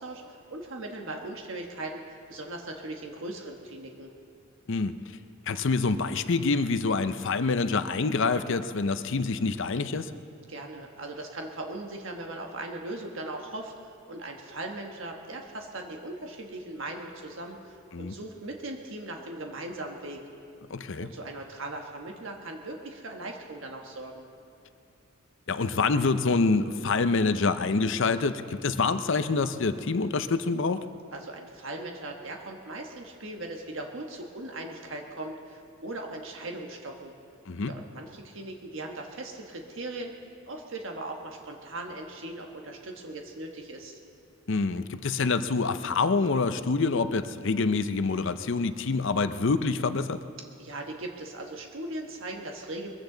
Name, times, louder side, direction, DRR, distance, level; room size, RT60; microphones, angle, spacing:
voice 1, 0.0-4.1 10.5-20.2 21.0-24.2 31.1-37.1 37.6-40.1 40.5-44.0 50.6-52.9, right 2 dB, 60° right, 2 dB, 1.4 m, -39 dB
voice 2, 5.5-10.1 17.9-18.1 20.7-21.1 25.5-30.8 37.5-37.7 44.5-50.2, left 4 dB, 60° left, 11 dB, 0.6 m, -26 dB
22.5 x 15.5 x 3.9 m, 2.5 s
head